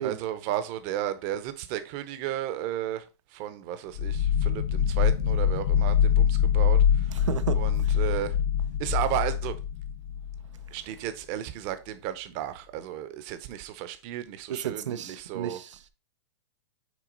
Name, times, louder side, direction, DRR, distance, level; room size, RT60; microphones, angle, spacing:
voice 1, 0.0-3.0 3.3-7.3 7.6-8.4 8.8-9.6 10.7-15.6, right 12 dB, 35° right, 0.8 m, -34 dB
sound 1, 4.0-10.7, left 8 dB, 80° left, 0.9 m, -24 dB
voice 2, 7.1-7.9 14.5-15.9, right 9 dB, 90° right, 0.6 m, -33 dB
6.2 x 4.0 x 3.9 m
hypercardioid pair, 150°, 15 cm